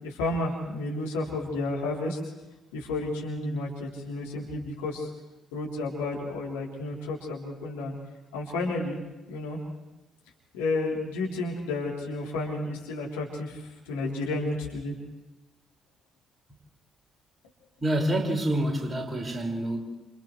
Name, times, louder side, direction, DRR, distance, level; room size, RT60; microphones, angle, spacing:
voice 1, 0.0-2.2 2.7-5.1 5.5-7.9 8.3-9.0 9.3-9.6 10.5-14.9, left 2 dB, 75° left, 3.5 m, -31 dB
voice 2, 17.8-19.8, right 1 dB, 20° right, 5.6 m, -27 dB
30.0 x 28.5 x 3.3 m
figure-of-eight pair, 45°, 0 cm